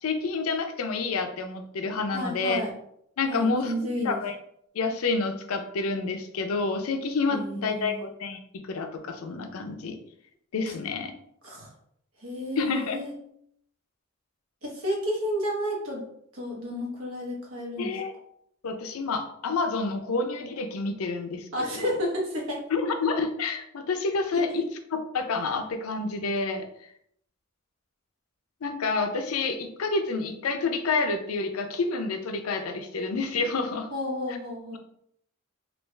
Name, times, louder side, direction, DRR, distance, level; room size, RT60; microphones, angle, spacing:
voice 1, 0.0-2.6 3.2-3.7 4.0-4.4 4.7-10.0 10.5-11.1 12.6-13.0 17.8-18.1 18.6-21.9 22.7-24.6 24.9-26.7 28.6-33.9 34.7-34.8, left 4 dB, 85° left, 7 dB, 0.5 m, -29 dB
voice 2, 2.1-2.7 3.3-4.2 7.3-8.1 11.4-11.7 12.2-13.1 14.6-16.1 16.3-18.0 21.5-22.7 24.3-24.5 33.9-34.8, equal, 75° right, -1 dB, 1.0 m, -31 dB
3.3 x 2.4 x 3.1 m, 0.70 s
head